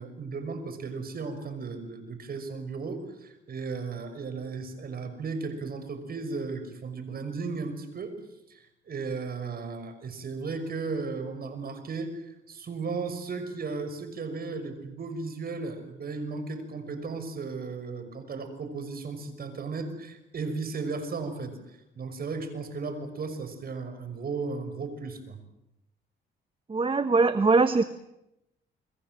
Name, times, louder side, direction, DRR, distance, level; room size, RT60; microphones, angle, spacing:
voice 1, 0.0-8.2 8.5-21.6 22.0-25.4, right 4 dB, 50° right, 9 dB, 6.0 m, -35 dB
voice 2, 26.7-27.8, right 4 dB, 25° right, 11 dB, 1.2 m, -22 dB
30.0 x 21.5 x 7.8 m, 0.85 s
cardioid pair, 90°, 20 cm